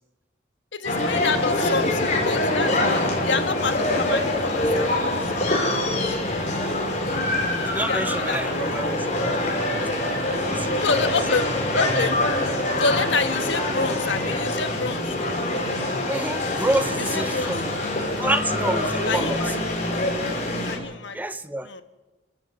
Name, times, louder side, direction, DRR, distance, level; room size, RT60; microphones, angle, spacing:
voice 1, 0.7-6.2 7.8-8.7 10.8-12.2 12.8-15.2 17.0-17.6 19.1-19.5 20.6-21.2 21.6-21.8, left 4 dB, 85° left, 8 dB, 1.5 m, -28 dB
sound 1, 0.8-20.8, left 1 dB, 40° left, 5.0 m, -25 dB
voice 2, 7.5-11.0 16.0-17.8 18.2-19.4 21.1-21.7, right 1 dB, 10° right, 11 dB, 0.8 m, -29 dB
29.0 x 13.0 x 8.0 m, 1.2 s
head